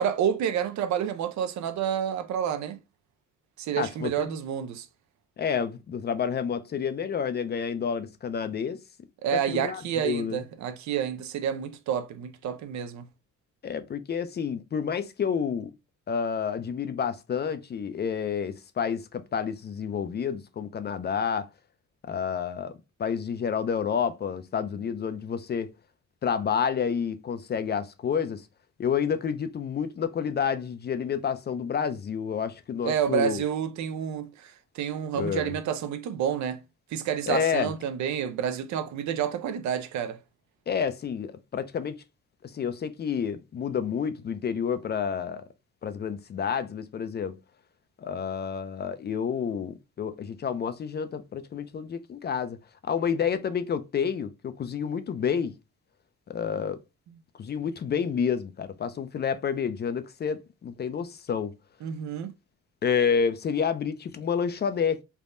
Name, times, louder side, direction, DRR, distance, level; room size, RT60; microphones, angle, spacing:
voice 1, 0.0-2.8 3.6-4.9 9.2-13.1 32.8-36.6 36.9-40.2 61.8-62.3, right 8 dB, 70° right, 0.5 m, -29 dB
voice 2, 3.8-4.3 5.4-8.8 9.3-10.4 13.6-15.7 16.1-21.5 22.1-25.7 26.2-28.5 28.8-33.4 35.1-35.5 37.3-37.7 40.7-42.0 42.4-45.4 45.8-47.4 48.0-55.6 56.3-56.8 57.3-61.5 62.8-65.0, left 7 dB, 35° left, 0.4 m, -29 dB
3.4 x 2.1 x 2.5 m
cardioid pair, 90°, 30 cm